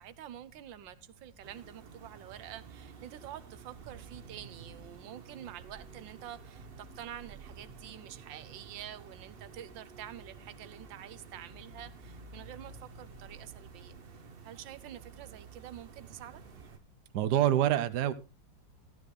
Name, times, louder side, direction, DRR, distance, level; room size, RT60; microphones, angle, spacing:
voice 1, 0.0-16.4, right 11 dB, 85° right, 1.5 m, -48 dB
sound 1, 1.4-16.8, right 5 dB, 40° right, 1.0 m, -51 dB
voice 2, 17.1-18.1, right 11 dB, 70° right, 1.3 m, -26 dB
13.0 x 12.5 x 3.2 m
omnidirectional pair, 2.0 m